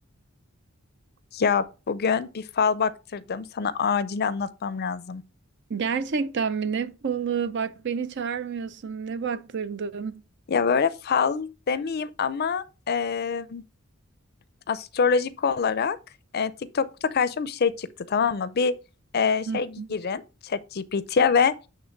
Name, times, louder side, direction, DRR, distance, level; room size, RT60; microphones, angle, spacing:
voice 1, 1.3-5.2 10.5-13.6 14.7-16.0 16.3-18.7 19.1-21.5, left 6 dB, 50° left, 0.5 m, -25 dB
voice 2, 5.7-10.2 19.5-19.9, right 6 dB, 55° right, 0.5 m, -29 dB
8.8 x 3.3 x 4.5 m
head